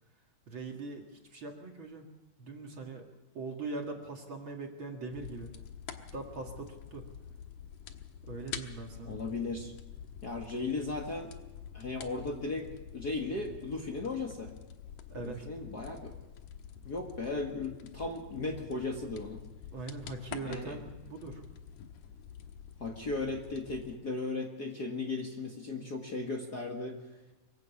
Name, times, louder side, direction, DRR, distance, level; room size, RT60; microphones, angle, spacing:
voice 1, 0.5-1.1 1.3-2.0 2.4-3.1 3.3-5.5 6.1-7.1 8.2-9.2 15.1-15.5 19.7-21.4, right 3 dB, 45° right, 1 dB, 2.5 m, -41 dB
sound 1, 5.1-24.0, left 8 dB, 80° left, 2.6 m, -47 dB
voice 2, 9.0-9.7 10.2-11.3 11.7-12.7 12.9-14.5 15.2-16.1 16.8-19.4 20.4-20.8 22.8-27.0, left 3 dB, 40° left, 1 dB, 1.9 m, -36 dB
24.0 x 16.0 x 7.1 m, 1.1 s
omnidirectional pair, 3.5 m